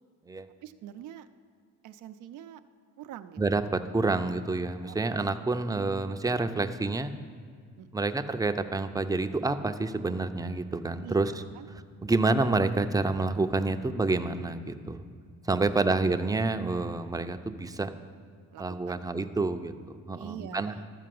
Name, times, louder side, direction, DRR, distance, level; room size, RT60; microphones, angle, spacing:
voice 1, 0.6-1.3 1.8-2.6 3.0-3.4 4.9-5.0 7.8-8.1 11.0-11.7 15.5-16.0 18.5-19.4 20.1-20.9, right 10 dB, 85° right, 10 dB, 0.5 m, -45 dB
voice 2, 3.4-7.1 7.9-11.3 12.0-15.0 15.4-17.9 18.6-19.7 20.1-20.7, right 3 dB, 10° right, 8 dB, 0.5 m, -28 dB
12.5 x 4.6 x 7.6 m, 2.1 s
cardioid pair, 90°, 30 cm